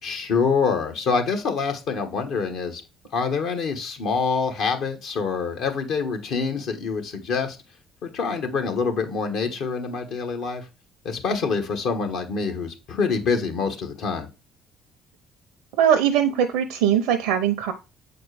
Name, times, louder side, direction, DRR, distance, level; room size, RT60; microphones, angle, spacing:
voice 1, 0.0-2.8 3.1-7.6 8.0-10.7 11.0-14.3, left 5 dB, 70° left, 1.3 m, -26 dB
voice 2, 15.8-17.7, right 9 dB, 80° right, 0.5 m, -20 dB
6.8 x 4.3 x 3.3 m
hypercardioid pair, 60°, 0 cm